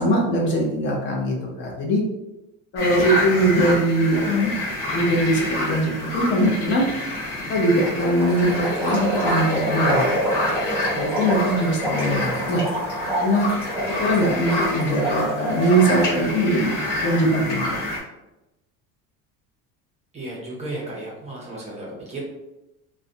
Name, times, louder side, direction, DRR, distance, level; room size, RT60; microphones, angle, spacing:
voice 1, 0.0-2.0 2.7-4.5 4.9-6.9 7.5-10.0 10.3-10.4 10.9-12.6 13.2-13.5 14.0-16.7 17.0-17.8, right 1 dB, 35° left, -2 dB, 0.5 m, -21 dB
sound 1, 2.8-18.0, left 1 dB, 75° left, 1.1 m, -28 dB
sound 2, 8.0-16.0, right 1 dB, 5° right, 1.1 m, -26 dB
voice 2, 20.1-22.2, right 2 dB, 20° right, -5 dB, 0.4 m, -34 dB
2.4 x 2.1 x 2.5 m, 0.97 s
cardioid pair, 160°, 33 cm